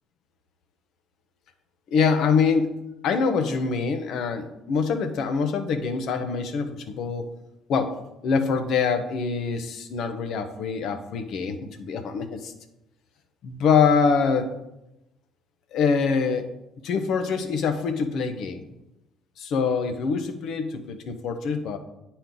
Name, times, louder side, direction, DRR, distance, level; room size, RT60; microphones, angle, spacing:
voice 1, 1.9-2.7 3.0-7.2 7.7-8.0 8.2-12.5 13.4-14.5 15.7-16.5 16.8-18.6 19.4-21.8, left 5 dB, 70° left, 8 dB, 0.8 m, -24 dB
9.0 x 4.4 x 3.8 m, 0.91 s
supercardioid pair, 65°, 0 cm